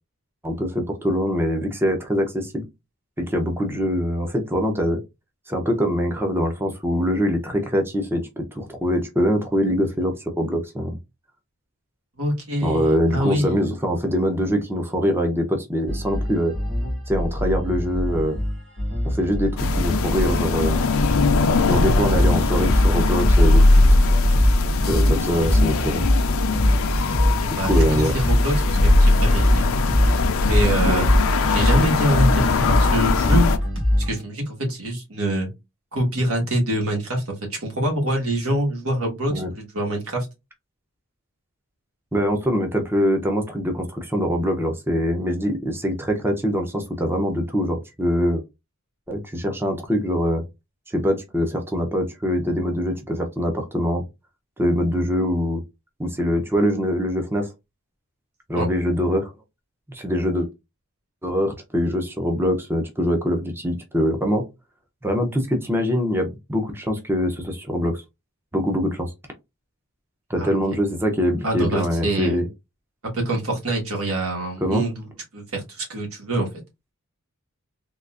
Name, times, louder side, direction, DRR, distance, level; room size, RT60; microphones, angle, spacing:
voice 1, 0.4-2.6 3.2-5.0 5.5-11.0 12.6-16.5 17.1-18.4 19.0-20.8 21.7-23.6 24.9-26.0 27.5-28.1 30.9-31.1 39.3-39.5 42.1-48.4 49.1-50.4 50.9-54.0 54.6-55.6 56.0-57.5 58.5-59.3 59.9-60.5 61.2-64.4 65.0-68.0 68.5-69.1 70.3-72.5 74.6-74.8, equal, 10° right, 4 dB, 0.6 m, -23 dB
voice 2, 12.2-13.6 27.2-29.8 30.4-31.2 31.5-33.5 34.0-35.5 35.9-40.3 58.5-58.7 70.4-70.6 71.4-72.4 73.1-76.5, right 1 dB, 90° right, 1 dB, 1.4 m, -25 dB
sound 1, 15.9-34.2, left 1 dB, 60° right, 1.8 m, -22 dB
sound 2, 19.6-33.6, left 3 dB, 70° left, 0.4 m, -20 dB
3.7 x 2.4 x 2.3 m, 0.22 s
head